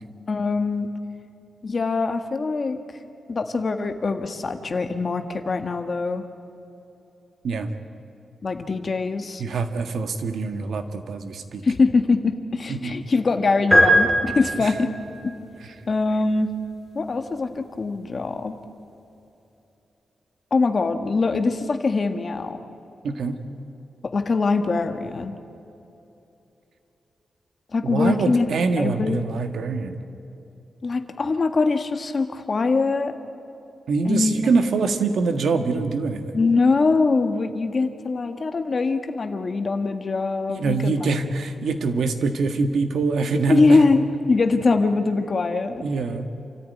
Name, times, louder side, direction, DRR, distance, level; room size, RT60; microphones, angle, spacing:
voice 1, 0.3-0.9 1.6-2.8 3.3-6.2 8.4-9.4 11.6-14.9 15.2-15.3 15.9-16.5 16.9-18.5 20.5-22.6 24.1-25.4 27.7-28.5 28.8-29.2 30.8-33.1 34.0-34.3 36.3-40.9 43.5-45.8, left 3 dB, 35° left, 7 dB, 1.4 m, -23 dB
voice 2, 9.4-11.6 12.7-12.9 14.6-14.7 23.0-23.4 27.8-30.0 33.9-36.3 40.5-43.8 45.8-46.3, right 4 dB, 75° right, 8 dB, 1.6 m, -24 dB
sound 1, 13.7-15.0, equal, 10° left, 5.4 m, -18 dB
28.5 x 14.0 x 9.5 m, 2.9 s
wide cardioid pair, 170°, 0 cm